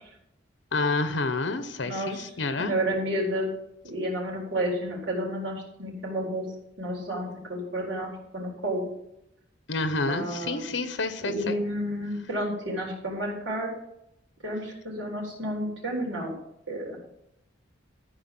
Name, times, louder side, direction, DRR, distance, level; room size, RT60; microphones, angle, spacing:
voice 1, 0.7-2.7 9.7-11.6, left 3 dB, 80° left, 10 dB, 1.0 m, -29 dB
voice 2, 1.8-2.2 2.6-3.5 3.8-6.5 6.8-8.8 10.1-10.7 11.2-13.7 14.4-16.3 16.7-17.0, right 1 dB, 85° right, -2 dB, 4.3 m, -31 dB
13.5 x 4.9 x 7.7 m, 0.81 s
head